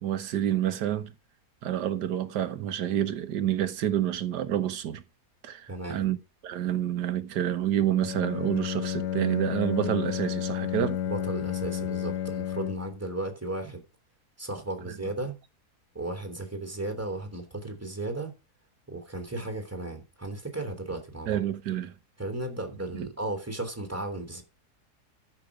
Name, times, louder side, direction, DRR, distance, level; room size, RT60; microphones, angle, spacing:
voice 1, 0.0-1.1 1.6-5.0 5.4-6.2 6.4-11.0 14.9-15.0 21.3-21.9 22.9-23.1, right 11 dB, 85° right, 1.6 m, -28 dB
voice 2, 5.7-6.0 11.1-13.8 14.4-15.4 15.9-18.3 18.9-21.4 22.2-24.4, right 2 dB, 10° right, 3.1 m, -35 dB
Bowed string instrument, 8.0-13.1, left 11 dB, 85° left, 1.4 m, -31 dB
13.5 x 6.1 x 4.9 m
omnidirectional pair, 1.7 m